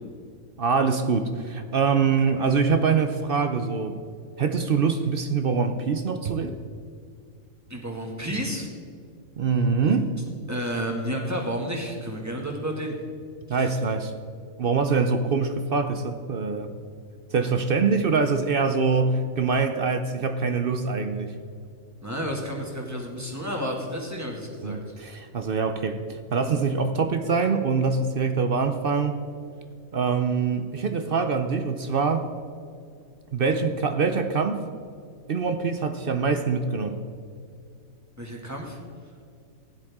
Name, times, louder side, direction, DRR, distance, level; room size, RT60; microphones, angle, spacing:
voice 1, 0.6-4.0 4.4-6.6 9.4-10.2 13.5-14.1 14.6-16.7 17.3-21.3 24.6-26.0 26.3-29.2 29.9-32.3 33.3-34.6 35.3-37.0, right 5 dB, 50° right, 8 dB, 0.7 m, -24 dB
voice 2, 7.7-8.7 10.5-13.0 22.0-24.9 38.2-38.8, equal, 10° right, -1 dB, 1.9 m, -31 dB
15.5 x 10.5 x 3.6 m, 2.3 s
omnidirectional pair, 1.5 m